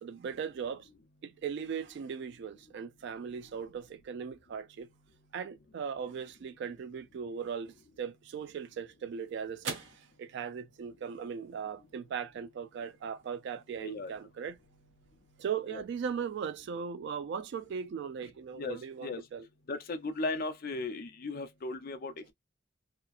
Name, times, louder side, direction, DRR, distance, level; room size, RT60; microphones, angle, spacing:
voice 1, 0.0-0.9 1.2-4.9 5.3-14.6 15.4-19.5, right 7 dB, 60° right, 0.3 m, -38 dB
sound 1, 8.4-16.9, right 5 dB, 75° right, 0.7 m, -50 dB
voice 2, 13.8-14.1 15.7-15.8 18.5-19.2 19.7-22.3, left 3 dB, 50° left, 0.5 m, -37 dB
2.9 x 2.4 x 2.4 m
head